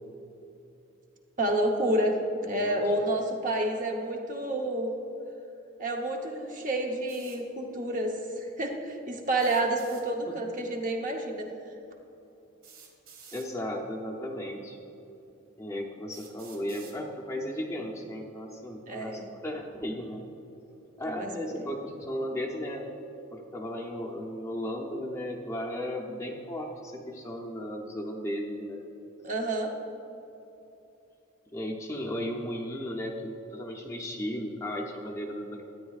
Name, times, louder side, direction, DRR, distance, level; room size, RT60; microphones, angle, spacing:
voice 1, 1.4-2.2 2.4-4.9 5.8-11.5 18.9-19.3 21.1-21.3 21.6-21.7 29.2-29.7, right 1 dB, 40° right, 2 dB, 0.9 m, -29 dB
sound 1, 7.1-7.4 9.3-10.1 11.5-11.6 12.6-13.5 14.5-14.6 15.3-15.4 16.1-17.0, right 6 dB, 90° right, 1.4 m, -51 dB
voice 2, 13.3-14.8 15.6-20.2 21.0-22.9 23.3-28.8 31.5-35.6, equal, 15° left, -1 dB, 0.6 m, -35 dB
13.0 x 9.3 x 2.4 m, 3.0 s
head